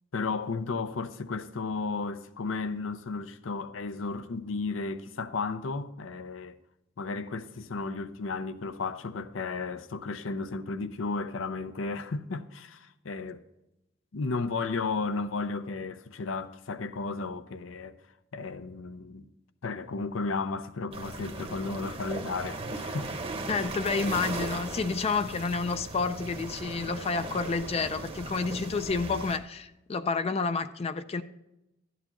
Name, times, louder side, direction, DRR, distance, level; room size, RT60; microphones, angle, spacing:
voice 1, 0.1-6.6 7.0-13.4 14.1-18.0 18.3-19.3 19.6-23.1 23.5-23.6, left 4 dB, 80° left, 0.6 m, -34 dB
sound 1, 20.9-29.4, right 2 dB, 30° right, 0.9 m, -37 dB
voice 2, 23.5-31.2, left 4 dB, 30° left, 0.4 m, -30 dB
12.5 x 9.3 x 3.0 m
head